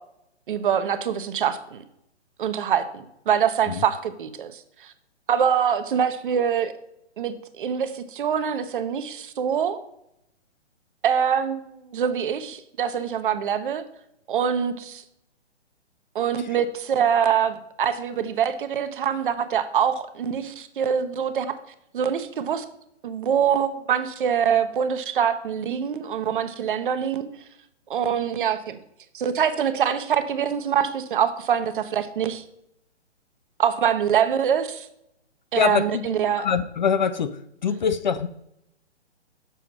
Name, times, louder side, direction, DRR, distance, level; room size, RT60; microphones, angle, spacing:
voice 1, 0.5-1.8 2.4-4.9 5.3-6.7 7.2-9.8 11.0-11.6 11.9-13.8 14.3-15.0 16.1-21.5 21.9-22.6 23.0-27.3 27.9-28.8 29.1-32.4 33.6-34.9 35.5-36.5, right 8 dB, 45° right, 10 dB, 0.8 m, -24 dB
voice 2, 35.5-38.3, left 7 dB, 40° left, 12 dB, 0.4 m, -24 dB
7.1 x 4.6 x 5.8 m, 0.77 s
hypercardioid pair, 145°, 35 cm